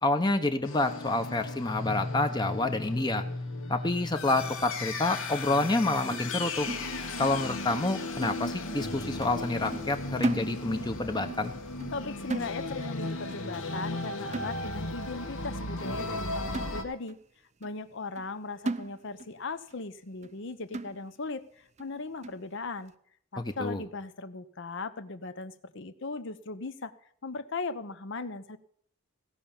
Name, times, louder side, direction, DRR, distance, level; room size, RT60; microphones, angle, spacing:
voice 1, 0.0-3.2 3.7-6.7 7.2-11.5 23.4-23.8, left 2 dB, 20° left, 7 dB, 0.8 m, -28 dB
sound 1, 0.7-16.8, left 2 dB, 75° left, 1.7 m, -36 dB
sound 2, 6.1-7.4 7.7-7.9 8.2-8.9 9.2-9.5 9.7-11.0 11.3-11.5 11.8-13.0 13.3-13.6 13.9-14.0 14.3-15.0 15.5-15.6 16.0-16.1 16.5-17.2 17.6-17.7 18.2-18.3 18.7-19.4 19.7-19.8 20.2-20.4 20.7-21.3 21.8-21.9 22.2-22.5, right 2 dB, 35° right, 0.5 m, -37 dB
voice 2, 11.9-17.2 17.6-22.9 23.3-26.9 27.2-28.6, left 3 dB, 60° left, 12 dB, 0.9 m, -38 dB
16.5 x 5.6 x 8.8 m, 0.64 s
head